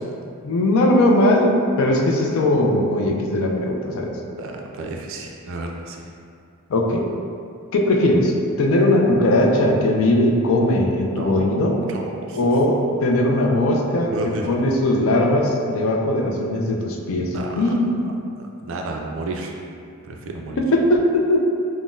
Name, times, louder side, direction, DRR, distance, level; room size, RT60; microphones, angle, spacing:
voice 1, 0.4-4.2 6.7-7.1 7.7-11.8 12.3-18.0 20.6-21.5, left 1 dB, 60° left, 0 dB, 0.4 m, -19 dB
voice 2, 4.4-6.1 11.2-11.5 11.9-12.5 14.1-14.5 17.3-17.6 18.4-19.5 20.0-20.6, right 2 dB, 60° right, 1 dB, 0.3 m, -31 dB
3.7 x 2.1 x 2.5 m, 2.4 s
head